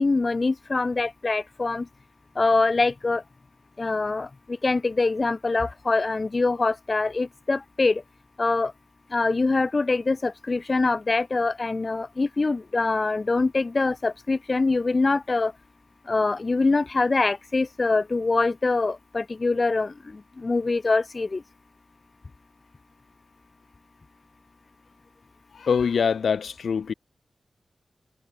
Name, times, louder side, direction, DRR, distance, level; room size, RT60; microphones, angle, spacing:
voice 1, 0.0-1.9 2.3-3.2 3.8-8.0 8.4-8.7 9.1-15.5 16.1-21.4, left 3 dB, 50° left, 2.5 m, -24 dB
voice 2, 25.5-26.9, left 6 dB, 85° left, 3.2 m, -24 dB
cardioid pair, 45°, 0 cm